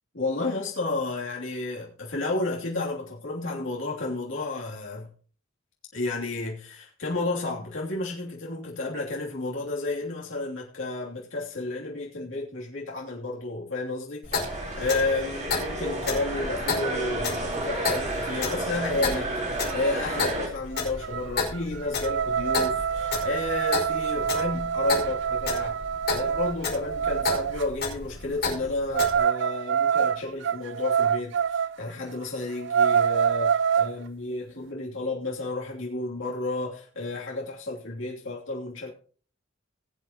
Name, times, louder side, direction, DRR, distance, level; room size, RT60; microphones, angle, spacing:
voice 1, 0.1-5.1 5.9-14.4 14.8-25.8 26.1-38.9, left 2 dB, 70° left, -3 dB, 2.9 m, -31 dB
Clock, 14.2-29.2, left 4 dB, 55° left, 5.5 m, -33 dB
sound 1, 14.3-20.5, right 1 dB, 40° right, 3.8 m, -32 dB
sound 2, 19.7-19.8 20.1-20.4 20.7-27.7 28.9-31.8 32.2-32.3 32.6-33.9, right 7 dB, 65° right, 0.4 m, -26 dB
21.0 x 8.5 x 2.9 m, 0.42 s
head